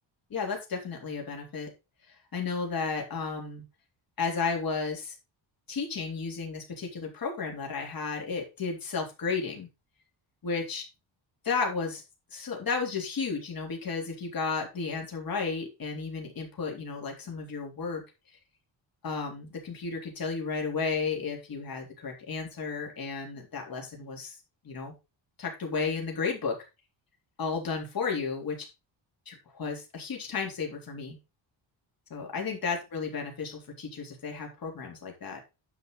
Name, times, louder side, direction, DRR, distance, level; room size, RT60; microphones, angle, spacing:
voice 1, 0.3-1.7 2.3-3.6 4.2-5.1 5.7-9.7 10.4-10.8 11.4-12.0 12.3-18.0 19.0-24.4 24.6-24.9 25.4-26.5 27.4-28.7 29.3-31.2 32.1-35.4, left 5 dB, 50° left, 1 dB, 3.6 m, -33 dB
10.0 x 6.0 x 3.9 m, 0.26 s
cardioid pair, 140°, 45 cm